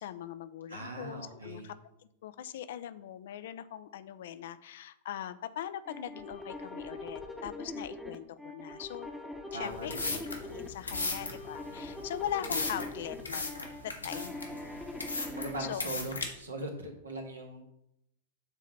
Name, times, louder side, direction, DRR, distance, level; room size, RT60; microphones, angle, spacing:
voice 1, 0.0-1.7 2.2-9.1 9.5-13.6 14.0-14.4 15.6-15.9, left 10 dB, 55° left, 14 dB, 0.5 m, -41 dB
voice 2, 0.7-1.7 9.5-10.2 15.3-17.6, right 1 dB, 75° right, 2 dB, 1.8 m, -40 dB
sound 1, 5.8-15.7, left 2 dB, ahead, 1.0 m, -42 dB
sound 2, 9.7-16.2, left 3 dB, 80° left, 1.4 m, -37 dB
8.2 x 3.8 x 6.6 m, 0.79 s
figure-of-eight pair, 90°, 0 cm